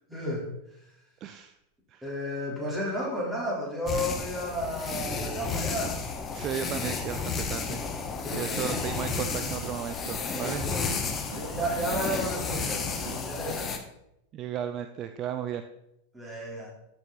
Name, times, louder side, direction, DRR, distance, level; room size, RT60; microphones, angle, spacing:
voice 1, 0.1-0.4 2.0-6.0 8.2-8.7 10.3-10.9 11.3-13.7 16.1-16.7, equal, 5° right, -5 dB, 4.1 m, -32 dB
voice 2, 1.2-1.5 1.9-2.0 6.3-7.9 8.3-10.7 14.3-15.6, right 9 dB, 35° right, 9 dB, 0.5 m, -34 dB
sound 1, 3.9-13.8, left 5 dB, 20° left, 1.2 m, -32 dB
sound 2, 8.3-13.3, right 4 dB, 65° right, 2.6 m, -41 dB
13.5 x 6.2 x 4.2 m, 0.82 s
figure-of-eight pair, 90°, 0 cm